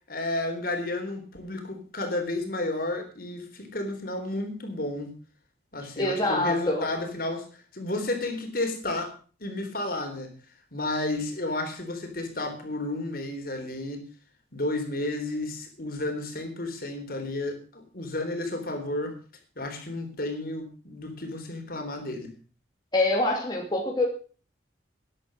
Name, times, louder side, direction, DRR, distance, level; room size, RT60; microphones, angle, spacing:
voice 1, 0.1-5.1 5.7-7.5 7.7-9.1 9.4-10.3 10.7-14.0 14.5-19.2 19.6-22.3, left 2 dB, 50° left, 5 dB, 3.8 m, -32 dB
voice 2, 6.0-6.9 22.9-24.1, left 2 dB, 25° left, -1 dB, 2.7 m, -25 dB
12.5 x 10.5 x 6.4 m, 0.39 s
head